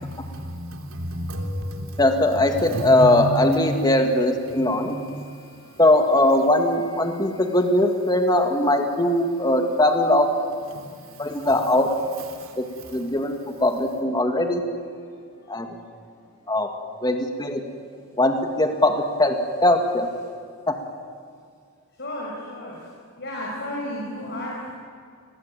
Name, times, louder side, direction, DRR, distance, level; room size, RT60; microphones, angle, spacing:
voice 1, 0.3-2.0 2.6-3.9 4.5-5.3 10.7-10.8 11.3-11.5, equal, 65° right, 3.7 m, -31 dB
voice 2, 2.0-5.0 5.8-10.3 11.2-11.9 12.6-12.7 12.9-13.4 13.6-14.6 15.5-15.7 16.5-16.7 17.0-17.6 18.2-19.3 19.6-20.1 20.7-20.8, left 1 dB, 20° left, 2.1 m, -20 dB
voice 3, 22.0-22.7 23.2-24.7, left 1 dB, 50° left, 5.9 m, -32 dB
30.0 x 21.0 x 9.0 m
head